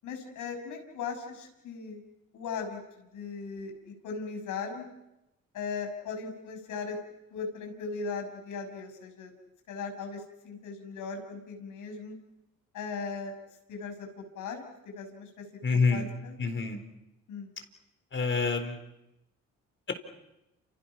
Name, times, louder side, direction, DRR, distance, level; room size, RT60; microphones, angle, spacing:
voice 1, 0.0-2.0 2.3-4.9 5.5-7.0 7.3-9.3 9.7-12.2 12.7-13.3 13.7-15.5 15.9-16.4 17.3-17.5, left 5 dB, 80° left, 4 dB, 6.3 m, -38 dB
voice 2, 15.6-16.1 16.4-16.8 18.1-18.7 19.9-20.0, left 4 dB, 40° left, 7 dB, 4.3 m, -27 dB
29.5 x 28.5 x 5.9 m, 0.90 s
cardioid pair, 90°, 30 cm